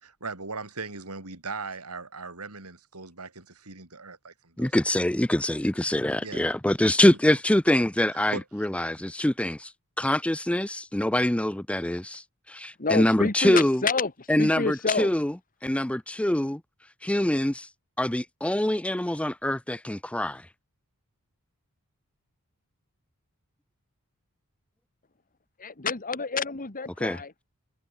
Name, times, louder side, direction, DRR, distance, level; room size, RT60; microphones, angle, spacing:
voice 1, 0.0-5.0 6.2-6.4 8.3-8.4, right 4 dB, 85° right, 5.1 m, -39 dB
voice 2, 4.6-9.7 10.0-13.8 14.3-15.3 15.6-16.6 17.0-17.7 18.0-20.5 27.0-27.2, left 1 dB, 5° left, 0.5 m, -24 dB
voice 3, 12.8-14.1 14.4-15.1 25.6-27.4, left 4 dB, 40° left, 1.8 m, -28 dB
head